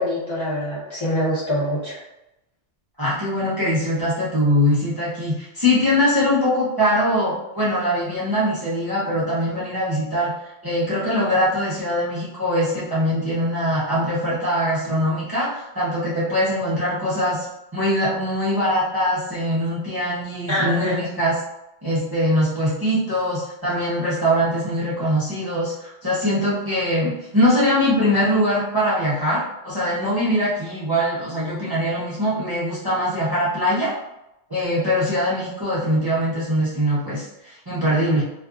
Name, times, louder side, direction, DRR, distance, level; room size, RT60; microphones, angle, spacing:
voice 1, 0.0-2.0 20.5-21.0, left 1 dB, 30° left, -9 dB, 0.6 m, -24 dB
voice 2, 3.0-17.5 17.7-21.4 21.8-33.9 34.5-38.2, equal, 30° right, -9 dB, 0.5 m, -22 dB
2.5 x 2.4 x 2.3 m, 0.91 s
omnidirectional pair, 1.2 m